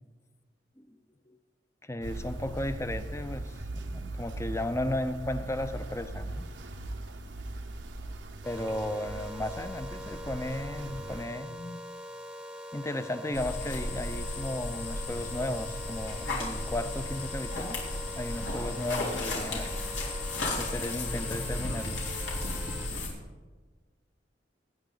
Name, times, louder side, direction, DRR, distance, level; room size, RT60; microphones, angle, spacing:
voice 1, 1.8-6.5 8.5-11.8 12.7-17.8 18.2-19.7 20.6-22.0, left 1 dB, 15° left, 10 dB, 0.7 m, -35 dB
sound 1, 2.0-11.3, right 1 dB, 80° right, 1.0 m, -40 dB
Synthesized Air Raid Siren With Delay, 8.4-22.9, equal, 5° right, 0.9 m, -44 dB
sound 2, 13.3-23.1, left 2 dB, 90° left, 3.7 m, -34 dB
21.0 x 9.4 x 4.0 m, 1.4 s
head